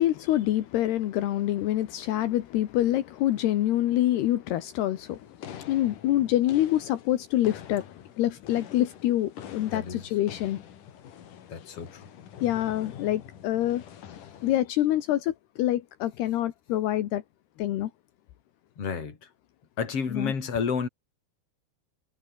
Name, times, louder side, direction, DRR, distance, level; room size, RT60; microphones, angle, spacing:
voice 1, 0.0-5.2 5.7-7.8 8.2-10.6 12.4-13.8 14.4-17.2 17.6-17.9 20.1-20.3, left 13 dB, 75° left, 3.3 m, -26 dB
sound 1, 5.1-14.6, left 9 dB, 55° left, 3.3 m, -46 dB
voice 2, 9.7-10.1 11.5-12.0 18.8-19.3 19.8-20.9, left 6 dB, 35° left, 4.3 m, -31 dB
omnidirectional pair, 4.8 m